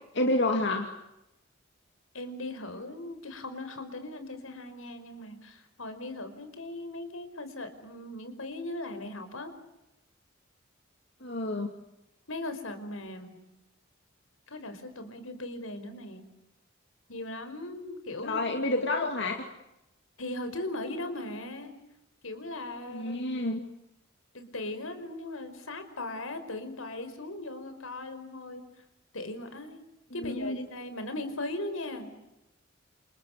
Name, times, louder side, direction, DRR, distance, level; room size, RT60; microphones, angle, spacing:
voice 1, 0.1-0.9 11.2-11.7 18.2-19.5 22.9-23.6 30.2-30.6, left 2 dB, 60° left, 3 dB, 2.5 m, -29 dB
voice 2, 2.1-9.5 12.3-13.4 14.5-16.2 17.1-18.5 20.2-21.7 22.2-23.2 24.3-28.6 29.1-29.8 30.1-32.2, left 2 dB, 85° left, 9 dB, 5.2 m, -38 dB
30.0 x 28.5 x 6.7 m, 0.90 s
head